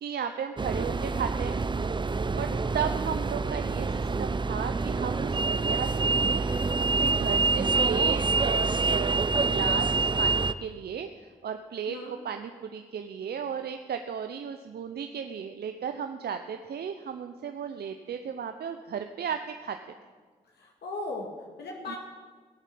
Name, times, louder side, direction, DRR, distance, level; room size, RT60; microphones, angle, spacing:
voice 1, 0.0-1.6 2.3-2.5 2.7-6.7 7.0-19.8 21.9-22.0, right 7 dB, 65° right, 7 dB, 0.8 m, -35 dB
sound 1, 0.6-10.5, right 3 dB, 25° right, 0.6 m, -26 dB
voice 2, 2.3-2.7 11.9-12.1 20.5-22.0, left 2 dB, 75° left, 0 dB, 2.1 m, -38 dB
17.5 x 8.4 x 7.6 m, 1.5 s
supercardioid pair, 50°, 17 cm